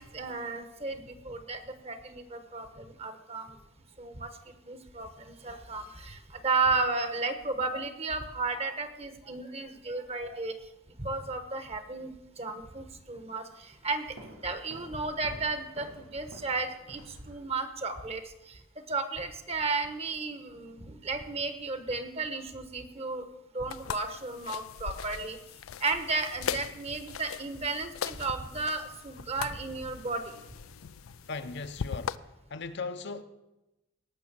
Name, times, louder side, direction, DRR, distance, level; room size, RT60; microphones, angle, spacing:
voice 1, 0.0-3.5 4.0-4.3 4.7-6.2 6.4-10.5 11.0-12.1 12.4-13.4 13.8-14.0 14.4-17.0 17.3-18.2 18.9-23.2 23.5-25.4 25.8-30.2, right 3 dB, 30° right, 1.2 m, -33 dB
sound 1, 14.2-17.9, right 1 dB, 90° right, 2.3 m, -51 dB
sound 2, 23.7-32.2, left 8 dB, 90° left, 0.4 m, -40 dB
voice 2, 31.3-32.2 32.5-33.2, left 4 dB, 55° left, 0.8 m, -37 dB
18.0 x 6.3 x 7.5 m
head